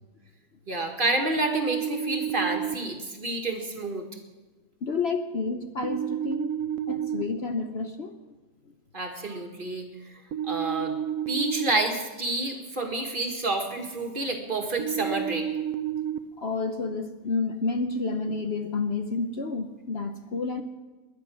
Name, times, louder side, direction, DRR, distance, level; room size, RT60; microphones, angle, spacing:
voice 1, 0.7-4.0 8.9-10.9 11.3-15.5, right 2 dB, 35° right, 3 dB, 2.0 m, -29 dB
sound 1, 1.4-2.7 5.8-7.2 10.3-11.7 14.8-16.2, right 10 dB, 65° right, 1.1 m, -30 dB
voice 2, 4.8-6.5 6.9-8.2 16.4-20.6, left 4 dB, 50° left, 6 dB, 1.0 m, -30 dB
20.5 x 10.5 x 6.3 m, 1.2 s
omnidirectional pair, 1.5 m